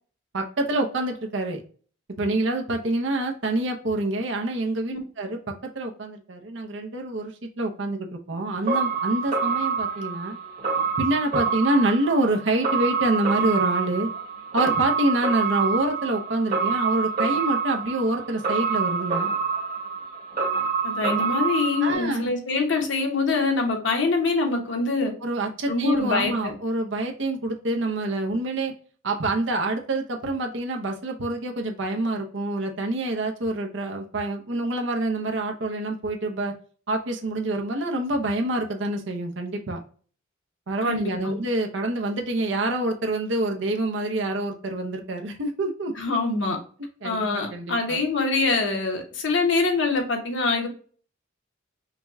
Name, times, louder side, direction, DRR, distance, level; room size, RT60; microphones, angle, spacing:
voice 1, 0.3-1.6 2.2-5.4 5.7-10.4 11.0-14.1 14.5-19.3 21.8-22.3 25.2-28.7 29.0-36.5 36.9-39.8 40.7-45.9 47.0-48.0, right 2 dB, 70° right, 3 dB, 0.8 m, -26 dB
sound 1, 8.7-21.9, right 5 dB, 45° right, 1.5 m, -27 dB
voice 2, 20.8-25.1 25.7-26.5 40.8-41.4 45.9-46.6 47.0-50.7, left 3 dB, 70° left, 2 dB, 1.1 m, -24 dB
5.1 x 2.3 x 2.6 m, 0.43 s
head